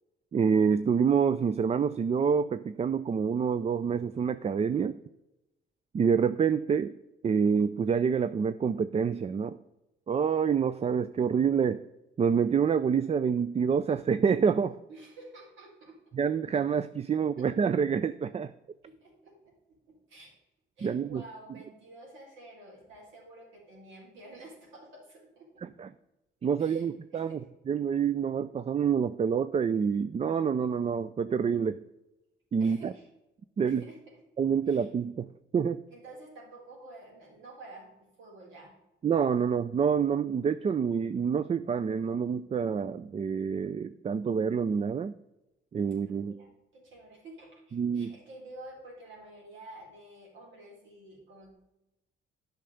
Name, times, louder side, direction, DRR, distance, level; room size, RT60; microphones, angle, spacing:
voice 1, 0.3-5.0 5.9-6.9 7.2-9.6 10.1-11.8 12.2-14.8 16.1-18.5 20.8-21.2 25.6-25.9 26.4-27.4 27.7-31.8 32.5-32.9 33.6-33.8 34.4-35.3 35.5-35.8 39.0-45.1 45.7-46.3 47.7-48.1, right 6 dB, 30° right, 14 dB, 0.4 m, -27 dB
voice 2, 14.9-16.2 17.4-17.5 18.8-19.5 19.9-20.4 20.8-25.7 26.6-27.4 32.6-33.1 33.6-34.0 34.7-34.9 35.9-38.7 46.1-51.5, right 2 dB, 75° right, -2 dB, 4.2 m, -50 dB
8.9 x 5.8 x 6.4 m, 0.96 s
cardioid pair, 90°, 20 cm